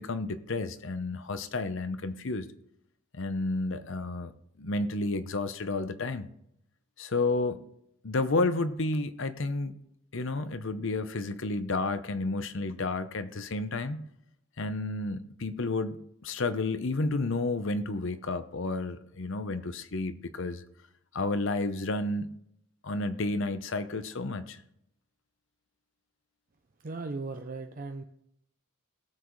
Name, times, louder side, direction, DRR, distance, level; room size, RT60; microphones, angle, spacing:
voice 1, 0.0-2.5 3.1-4.3 4.6-6.3 7.0-7.6 8.0-9.8 10.1-14.0 14.6-20.6 21.1-22.3 22.8-24.6, left 2 dB, 60° left, 11 dB, 0.8 m, -31 dB
voice 2, 26.8-28.0, right 3 dB, 40° right, 5 dB, 0.6 m, -37 dB
17.5 x 7.3 x 3.2 m, 0.74 s
head